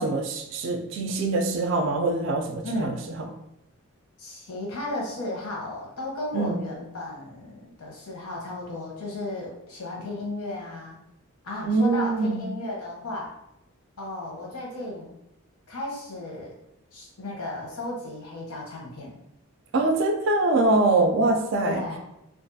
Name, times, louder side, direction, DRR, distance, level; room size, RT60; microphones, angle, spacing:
voice 1, 0.0-2.9 6.3-6.6 11.6-12.4 19.7-21.9, right 2 dB, 55° right, 5 dB, 0.3 m, -23 dB
voice 2, 2.6-3.0 4.2-11.0 11.4-13.3 14.0-15.1 15.7-16.5 16.9-19.2 21.6-22.0, left 1 dB, 90° left, -2 dB, 0.8 m, -34 dB
2.5 x 2.3 x 2.6 m, 0.85 s
head